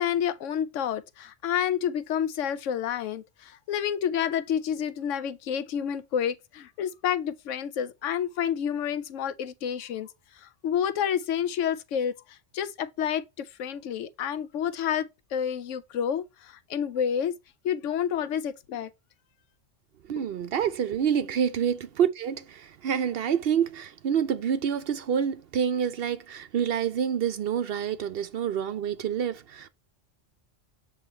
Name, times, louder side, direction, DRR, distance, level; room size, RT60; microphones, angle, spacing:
voice 1, 0.0-10.1 10.4-17.3 17.6-18.9, left 9 dB, 85° left, 1.0 m, -29 dB
voice 2, 20.1-29.7, right 8 dB, 60° right, 0.7 m, -27 dB
7.8 x 3.1 x 4.3 m
omnidirectional pair, 1.3 m